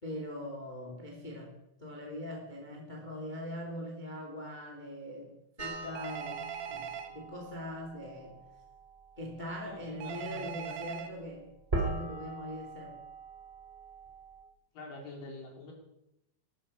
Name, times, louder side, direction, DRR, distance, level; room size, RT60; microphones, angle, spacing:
voice 1, 0.0-5.3 5.6-6.4 6.7-8.4 9.2-11.5 11.8-13.0, left 1 dB, 15° left, 1 dB, 2.3 m, -42 dB
sound 1, 5.6-14.4, right 2 dB, 15° right, 2.8 m, -41 dB
Telephone, 5.9-7.1 10.0-11.1, right 8 dB, 65° right, 2.6 m, -40 dB
voice 2, 9.6-10.8 14.7-15.7, left 2 dB, 75° left, 0 dB, 5.3 m, -46 dB
15.0 x 13.5 x 5.7 m, 0.87 s
omnidirectional pair, 4.1 m